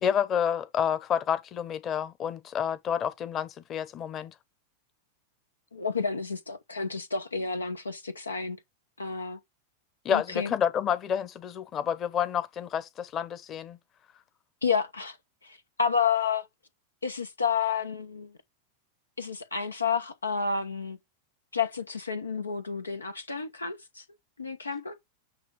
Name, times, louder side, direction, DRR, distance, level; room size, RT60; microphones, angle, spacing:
voice 1, 0.0-4.3 10.0-13.8, left 8 dB, 30° left, 1.1 m, -29 dB
voice 2, 5.7-8.6 9.0-9.4 10.1-10.5 14.6-15.2 15.4-16.5 17.0-18.3 19.2-21.0 21.5-24.0 24.4-25.0, left 6 dB, 80° left, 0.9 m, -30 dB
9.1 x 3.3 x 5.2 m
figure-of-eight pair, 90°, 0 cm